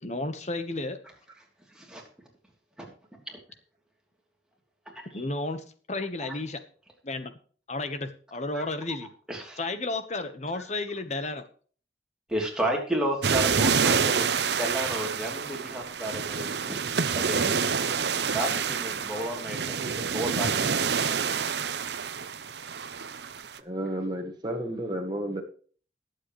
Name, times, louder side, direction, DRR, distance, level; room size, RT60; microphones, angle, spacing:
voice 1, 0.0-1.0 5.0-6.6 7.0-7.3 7.7-9.1 9.6-11.4, left 2 dB, 40° left, 9 dB, 1.2 m, -32 dB
voice 2, 4.9-5.2 6.2-6.4 8.5-8.6 9.3-9.6 10.5-10.6 12.3-14.3 14.6-16.8 17.1-17.7 18.3-20.7, right 1 dB, 5° right, -1 dB, 3.1 m, -32 dB
sound 1, 13.2-23.6, right 6 dB, 70° right, 0.8 m, -27 dB
voice 3, 23.6-25.4, right 1 dB, 25° right, 2 dB, 1.7 m, -32 dB
20.5 x 7.9 x 3.2 m, 0.43 s
head